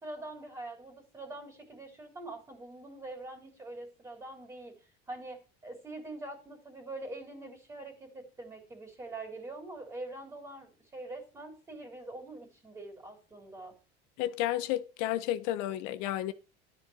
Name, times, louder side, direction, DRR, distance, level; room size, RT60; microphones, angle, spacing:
voice 1, 0.0-4.8 5.1-13.7, right 2 dB, 15° right, 3.7 m, -44 dB
voice 2, 14.2-16.3, left 13 dB, 70° left, 1.4 m, -31 dB
13.0 x 4.5 x 7.9 m
cardioid pair, 175°, 20 cm